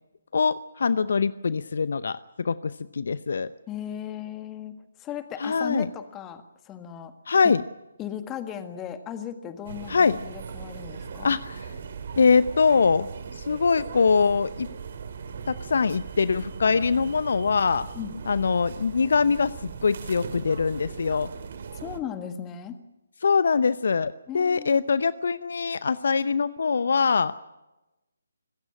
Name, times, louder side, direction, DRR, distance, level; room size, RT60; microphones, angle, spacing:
voice 1, 0.3-3.5 5.4-5.9 7.3-7.6 9.9-10.2 11.2-11.7 12.2-13.1 13.3-14.7 15.5-17.9 18.3-21.3 23.2-27.3, left 5 dB, 55° left, 16 dB, 0.7 m, -23 dB
voice 2, 3.7-4.7 5.0-7.1 7.4-7.5 8.0-11.4 18.0-18.1 21.8-22.8 24.3-24.9, left 9 dB, 15° left, 9 dB, 1.7 m, -36 dB
sound 1, 9.7-22.0, right 6 dB, 45° right, 2.5 m, -39 dB
25.5 x 15.0 x 10.0 m, 1.0 s
figure-of-eight pair, 145°, 0 cm